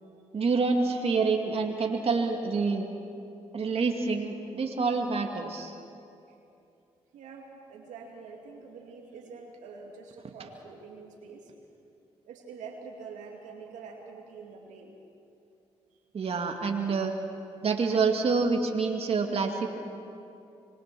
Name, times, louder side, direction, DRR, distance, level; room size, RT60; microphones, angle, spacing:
voice 1, 0.3-2.9 3.5-5.7 16.1-17.1 17.6-19.7, right 4 dB, 55° right, 2 dB, 2.3 m, -27 dB
voice 2, 7.1-11.5 12.2-15.0, right 5 dB, 85° right, 1 dB, 2.3 m, -46 dB
25.0 x 21.0 x 6.1 m, 2.7 s
supercardioid pair, 55°, 12 cm